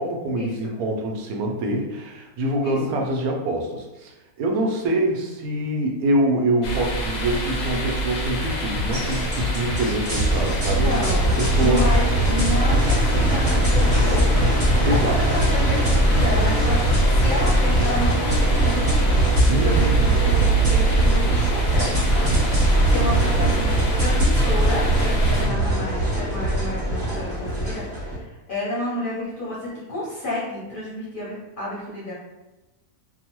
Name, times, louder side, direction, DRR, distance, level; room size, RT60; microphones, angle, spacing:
voice 1, 0.0-4.1 4.4-10.9 11.4-11.9 14.8-15.2 19.5-20.0 25.4-25.8, right 1 dB, 80° right, 1 dB, 1.0 m, -25 dB
sound 1, 6.6-25.5, right 3 dB, 70° left, 1.0 m, -26 dB
sound 2, 8.4-9.8 10.3-10.4 10.9-12.3 12.8-12.9 13.3-14.8 15.3-15.4 15.9-17.3 17.8-17.9, left 2 dB, 65° right, 0.7 m, -30 dB
sound 3, 8.9-28.1, right 1 dB, 40° right, 1.3 m, -21 dB
voice 2, 10.7-14.6 14.9-32.1, left 1 dB, 45° left, -7 dB, 0.8 m, -30 dB
2.9 x 2.0 x 2.9 m, 1.0 s
omnidirectional pair, 1.5 m